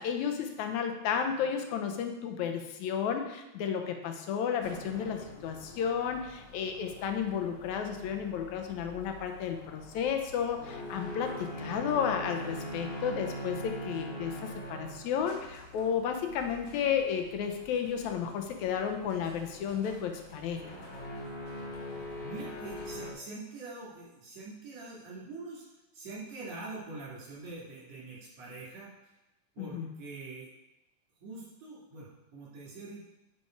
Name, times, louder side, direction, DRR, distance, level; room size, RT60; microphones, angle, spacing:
voice 1, 0.0-20.6 29.6-29.9, left 7 dB, 80° left, 5 dB, 2.1 m, -32 dB
sound 1, 4.6-23.1, equal, 60° left, 2.2 m, -43 dB
voice 2, 21.9-25.7 25.9-29.1 29.6-30.5 31.2-33.0, right 3 dB, 70° right, -6 dB, 3.7 m, -44 dB
9.2 x 4.3 x 4.6 m, 0.95 s
omnidirectional pair, 3.3 m